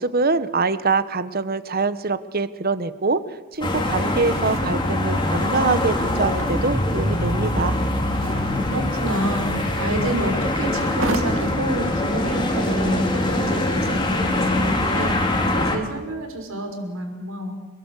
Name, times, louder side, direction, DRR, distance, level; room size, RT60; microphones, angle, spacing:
voice 1, 0.0-3.2 3.5-7.8, right 3 dB, 45° right, 13 dB, 1.2 m, -24 dB
sound 1, 3.5-13.9, right 2 dB, 65° right, 2.4 m, -38 dB
sound 2, 3.6-15.8, left 1 dB, 20° left, 3.1 m, -23 dB
voice 2, 8.3-17.5, right 1 dB, 80° right, 4 dB, 6.3 m, -29 dB
30.0 x 21.0 x 8.4 m, 1.3 s
head